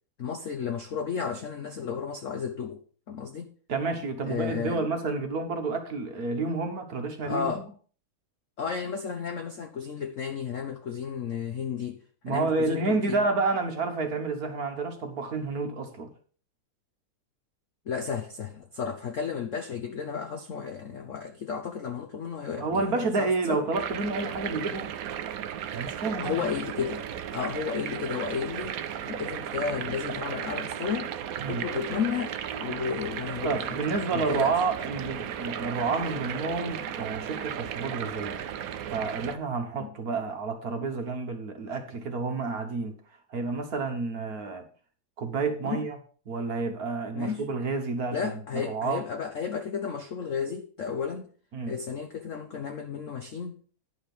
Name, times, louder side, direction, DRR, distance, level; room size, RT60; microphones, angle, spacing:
voice 1, 0.2-2.8 3.1-3.5 4.3-4.8 7.2-7.7 8.6-12.0 12.3-13.2 17.9-23.7 26.2-27.0 27.3-28.8 29.1-31.1 31.5-34.6 39.8-39.9 45.6-45.9 47.1-47.4 48.1-51.3 51.6-53.6, left 6 dB, 65° left, 0.7 m, -33 dB
voice 2, 3.7-7.6 12.2-16.1 22.6-24.9 25.7-26.4 31.4-31.6 33.4-38.4 38.9-42.9 43.3-44.7 45.2-46.0 46.3-48.3 48.6-49.0 51.5-51.7, right 3 dB, 50° right, 1.4 m, -30 dB
sound 1, 23.7-39.4, right 9 dB, 85° right, 0.7 m, -35 dB
10.5 x 5.2 x 5.9 m
omnidirectional pair, 2.3 m